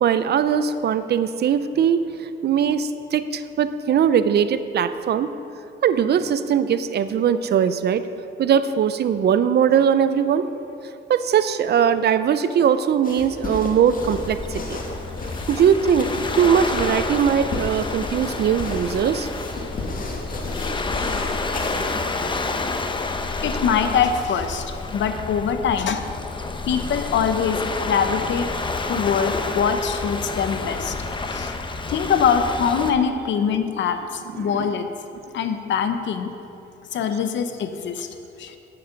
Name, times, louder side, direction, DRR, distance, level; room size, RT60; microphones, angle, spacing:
voice 1, 0.0-2.0 2.4-5.3 5.8-8.0 8.4-10.5 11.1-14.8 15.5-16.1 16.4-19.3 34.4-34.5, right 8 dB, 55° right, 12 dB, 0.5 m, -20 dB
sound 1, 13.0-22.1, left 2 dB, 45° left, 1.7 m, -33 dB
Waves surf, 14.0-32.9, left 3 dB, 25° left, 0.8 m, -29 dB
voice 2, 23.4-24.6 24.9-26.1 26.7-28.5 28.9-31.0 31.3-31.5 31.9-34.9 35.3-36.3 36.9-38.1 38.4-38.6, left 7 dB, 65° left, 8 dB, 0.9 m, -23 dB
9.3 x 8.3 x 5.9 m, 2.8 s
cardioid pair, 90°, 20 cm